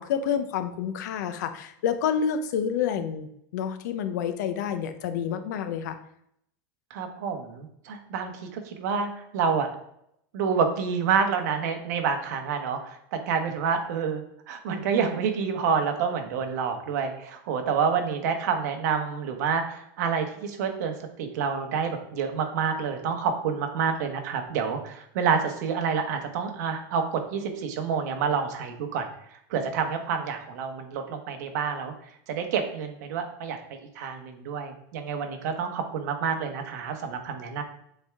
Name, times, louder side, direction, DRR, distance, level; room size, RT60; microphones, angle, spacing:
voice 1, 0.0-3.3 3.5-6.0, left 8 dB, 70° left, 9 dB, 0.7 m, -28 dB
voice 2, 6.9-9.7 10.3-14.2 14.5-20.9 21.2-29.0 29.5-31.9 32.3-37.6, right 6 dB, 65° right, 5 dB, 1.2 m, -28 dB
7.8 x 3.5 x 3.5 m, 0.72 s
supercardioid pair, 170°, 10 cm